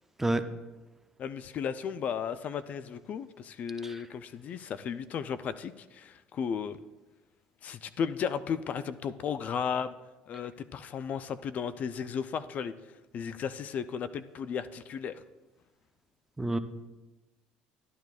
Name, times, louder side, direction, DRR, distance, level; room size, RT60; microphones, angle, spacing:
voice 1, 0.2-0.4 3.8-3.9 16.4-16.6, right 2 dB, 10° right, 9 dB, 0.6 m, -28 dB
voice 2, 1.2-6.8 7.6-9.9 10.3-12.7 13.1-15.2, left 7 dB, 50° left, 14 dB, 0.4 m, -34 dB
12.0 x 9.4 x 2.4 m, 1.1 s
supercardioid pair, 85°, 3 cm